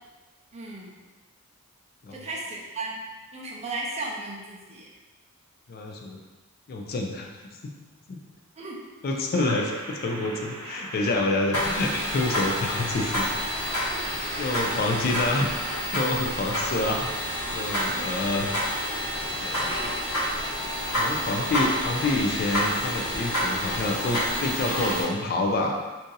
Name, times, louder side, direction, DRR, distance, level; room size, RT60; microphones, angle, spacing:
voice 1, 0.5-0.9 2.1-3.0 3.3-4.9 8.6-8.8 13.9-14.0 17.9-18.1, right 2 dB, 30° right, -3 dB, 0.5 m, -35 dB
voice 2, 5.7-6.2 6.7-7.7 8.1-8.2 9.0-13.7 14.4-15.5 15.9-17.1 17.5-18.5 19.4-19.8 20.9-25.8, left 2 dB, 45° left, 1 dB, 0.3 m, -28 dB
sound 1, 9.3-15.8, right 2 dB, 90° right, 0.6 m, -40 dB
sound 2, 11.5-25.0, equal, 65° left, 1.2 m, -29 dB
2.7 x 2.6 x 3.8 m, 1.3 s
head